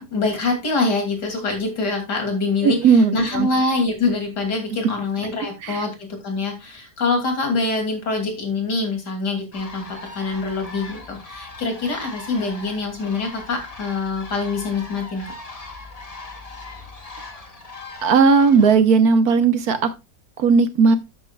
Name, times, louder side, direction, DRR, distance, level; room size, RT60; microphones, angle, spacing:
voice 1, 0.0-15.2, left 3 dB, 75° left, 4 dB, 3.3 m, -25 dB
voice 2, 2.6-3.5 5.6-5.8 18.0-19.9 20.4-21.0, right 5 dB, 65° right, 10 dB, 1.4 m, -16 dB
sound 1, 9.5-18.7, left 3 dB, 25° left, 1.4 m, -39 dB
12.5 x 8.2 x 2.3 m, 0.23 s
omnidirectional pair, 1.8 m